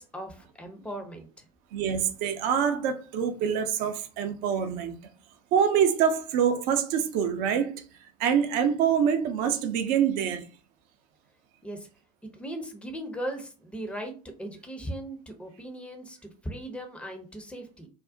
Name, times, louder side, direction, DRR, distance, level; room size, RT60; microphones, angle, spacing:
voice 1, 0.0-1.5 11.6-11.9 12.3-14.1 14.4-17.9, right 1 dB, 5° left, 0.6 m, -38 dB
voice 2, 1.7-5.0 5.5-7.7 8.2-10.5, right 8 dB, 45° right, 0.5 m, -25 dB
2.5 x 2.0 x 2.5 m
figure-of-eight pair, 75°, 20 cm